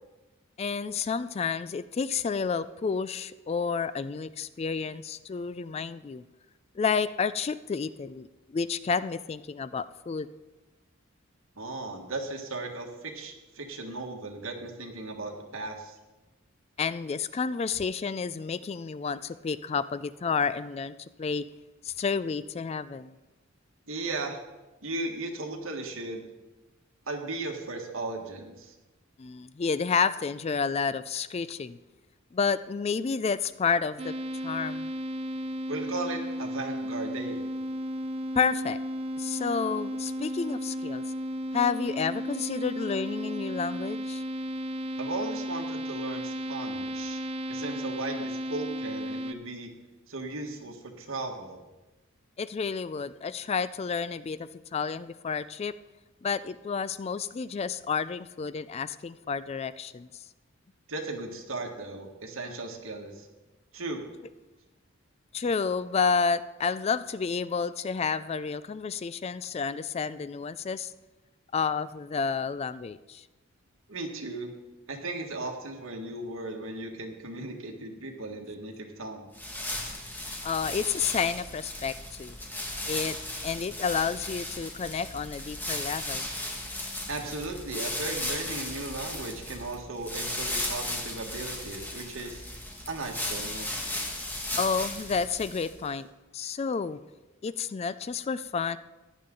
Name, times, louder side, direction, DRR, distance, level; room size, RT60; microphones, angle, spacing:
voice 1, 0.6-6.2 6.8-10.3 16.8-21.4 21.8-23.1 29.2-31.8 32.3-34.1 34.4-34.9 38.4-38.8 39.2-41.0 41.5-44.2 52.4-55.7 56.2-60.1 65.3-70.9 71.5-73.2 80.4-82.4 82.9-83.2 83.4-86.3 94.6-96.1 96.3-97.0 97.4-98.8, left 5 dB, 30° left, 15 dB, 0.3 m, -30 dB
voice 2, 11.6-15.9 23.9-24.4 24.8-26.3 27.1-28.7 35.7-37.4 45.0-47.2 47.5-49.7 50.1-51.6 60.9-63.3 63.7-64.0 73.9-74.5 74.9-79.3 87.1-92.4 92.9-93.9, right 2 dB, 75° right, 3 dB, 1.7 m, -36 dB
sound 1, 34.0-49.3, equal, 30° right, 0.5 m, -34 dB
sound 2, 79.3-95.9, left 1 dB, 10° left, 1.7 m, -36 dB
15.0 x 10.5 x 3.8 m, 1.1 s
head